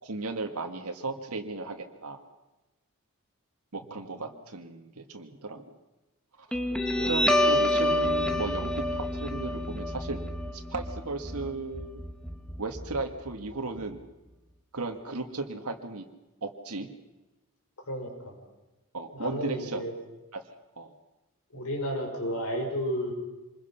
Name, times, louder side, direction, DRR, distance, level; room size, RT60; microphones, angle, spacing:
voice 1, 0.0-2.2 3.7-5.6 6.5-6.6 7.0-10.2 10.5-12.0 12.6-14.0 14.7-16.0 16.4-16.9 18.9-19.9 20.3-20.4 20.8-20.9, right 3 dB, 90° right, 4 dB, 1.8 m, -35 dB
Guitar, 6.5-13.5, left 1 dB, 5° left, 1.3 m, -28 dB
voice 2, 7.0-7.3 17.9-18.3 19.1-19.9 21.5-23.1, equal, 90° left, 2 dB, 5.6 m, -32 dB
26.0 x 21.0 x 5.8 m, 1.1 s
head